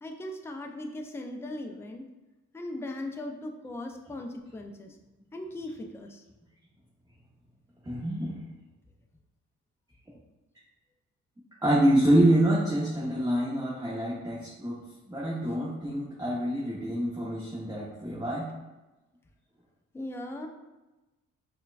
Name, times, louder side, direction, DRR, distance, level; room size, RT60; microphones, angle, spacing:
voice 1, 0.0-2.1 2.5-4.9 5.3-6.2 19.9-20.5, left 1 dB, 10° left, 2 dB, 0.4 m, -38 dB
voice 2, 7.9-8.4 11.6-14.8 15.1-18.5, right 1 dB, 10° right, -7 dB, 0.8 m, -26 dB
4.4 x 2.2 x 2.4 m, 1.1 s
cardioid pair, 90°, 30 cm